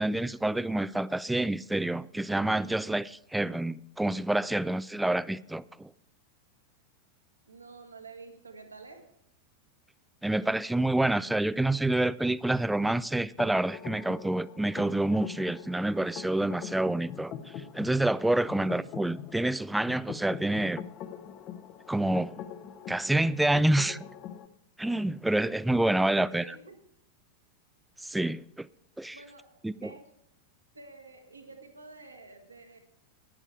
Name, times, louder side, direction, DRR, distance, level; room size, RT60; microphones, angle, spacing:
voice 1, 0.0-5.9 10.2-17.3 17.7-20.9 21.9-22.4 22.9-24.0 24.8-26.4 28.0-28.7 29.0-29.2 29.6-29.9, right 1 dB, 5° right, 0.3 m, -28 dB
voice 2, 7.5-9.1 11.9-12.0 26.1-26.8 29.1-30.1 30.7-32.8, right 3 dB, 80° right, 1.5 m, -49 dB
sound 1, 13.4-24.5, left 9 dB, 35° left, 0.8 m, -44 dB
10.5 x 10.0 x 4.6 m
figure-of-eight pair, 90°, 0 cm